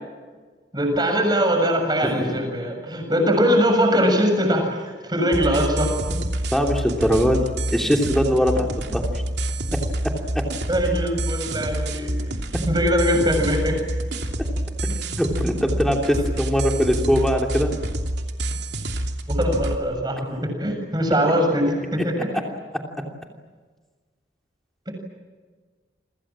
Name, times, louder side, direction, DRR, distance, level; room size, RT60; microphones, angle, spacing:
voice 1, 0.7-6.2 10.7-12.2 12.7-13.8 16.1-16.3 19.3-22.4 24.9-25.0, equal, 20° right, 4 dB, 7.2 m, -22 dB
voice 2, 2.0-2.4 6.5-7.4 7.7-9.0 10.3-10.4 15.2-17.7, equal, ahead, 2 dB, 2.9 m, -21 dB
sound 1, 5.3-19.7, right 1 dB, 65° right, 2.9 m, -27 dB
29.5 x 25.5 x 7.5 m, 1.4 s
head